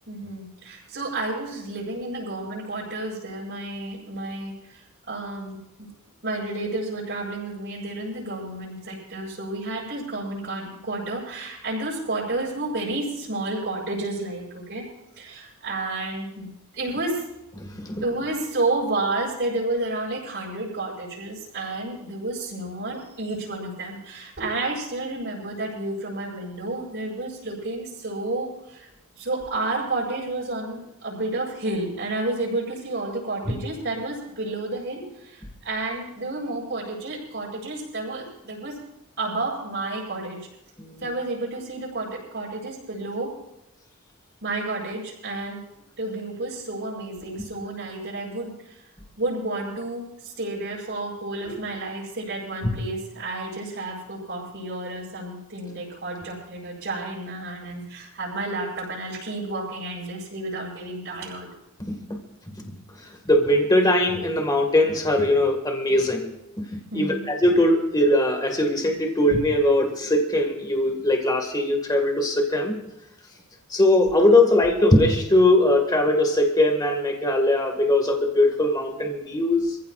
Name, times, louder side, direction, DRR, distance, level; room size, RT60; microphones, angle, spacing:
voice 1, 0.1-4.8 5.1-5.9 6.2-14.8 15.2-17.2 18.0-28.9 29.2-38.8 39.2-40.5 41.0-43.3 44.4-45.6 46.0-48.8 49.2-61.5 66.9-67.2, right 2 dB, 50° right, -8 dB, 7.0 m, -31 dB
voice 2, 17.6-18.0 33.5-33.6 40.8-41.1 52.6-52.7 61.8-62.2 62.6-72.8 73.7-79.8, left 1 dB, 20° left, 3 dB, 1.8 m, -21 dB
27.5 x 15.5 x 2.5 m, 0.85 s
head